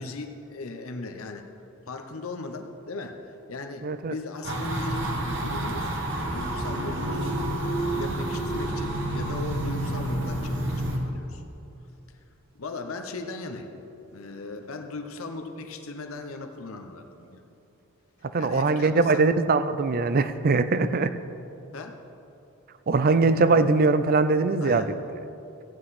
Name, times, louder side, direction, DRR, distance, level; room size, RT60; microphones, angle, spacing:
voice 1, 0.0-1.5 1.9-7.4 7.9-11.4 12.5-13.7 14.1-17.4 18.4-19.3 20.8-21.0 21.7-22.0 24.6-24.9, left 3 dB, 85° left, 5 dB, 0.9 m, -38 dB
voice 2, 3.8-4.1 18.3-21.1 22.9-25.2, right 3 dB, 45° right, 12 dB, 0.4 m, -22 dB
sound 1, 4.4-11.0, right 1 dB, 60° right, 1.6 m, -29 dB
15.0 x 9.7 x 4.2 m, 2.8 s
head